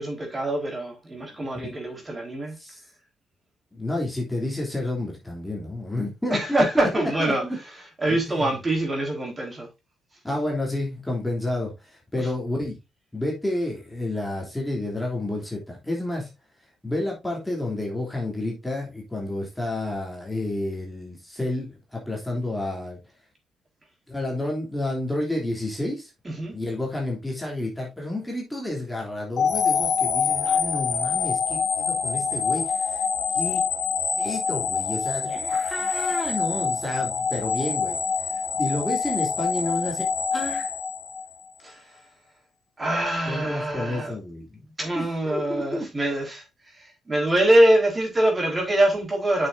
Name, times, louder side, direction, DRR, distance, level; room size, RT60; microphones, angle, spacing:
voice 1, 0.0-2.6 6.3-7.4 8.0-9.7 12.2-12.3 26.2-26.6 41.6-41.7 42.8-44.1 44.8-46.4 47.1-49.5, right 1 dB, 25° right, 4.1 m, -24 dB
voice 2, 1.4-1.7 2.6-2.8 3.7-7.6 8.1-8.5 10.2-12.8 13.1-16.3 16.8-23.0 24.1-26.1 26.5-33.0 33.3-33.6 34.2-38.0 38.3-40.7 43.2-45.9, left 1 dB, 10° left, 3.1 m, -30 dB
sound 1, 29.4-41.5, left 6 dB, 55° left, 2.9 m, -26 dB
8.6 x 6.8 x 2.7 m
cardioid pair, 90°, 0 cm